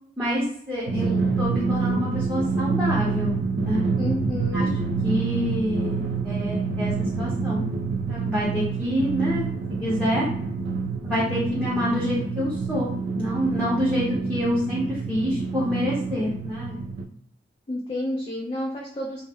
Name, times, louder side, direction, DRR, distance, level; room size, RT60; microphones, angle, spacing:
voice 1, 0.2-1.1 1.4-3.9 4.5-4.6 5.0-7.7 8.1-9.5 9.8-10.3 11.0-12.9 13.2-16.8, equal, 5° right, -9 dB, 0.6 m, -27 dB
Drum, 0.9-17.0, right 4 dB, 70° right, 0.3 m, -27 dB
voice 2, 4.0-4.7 17.7-19.2, left 1 dB, 30° left, -2 dB, 0.3 m, -30 dB
2.1 x 2.0 x 3.4 m, 0.65 s
head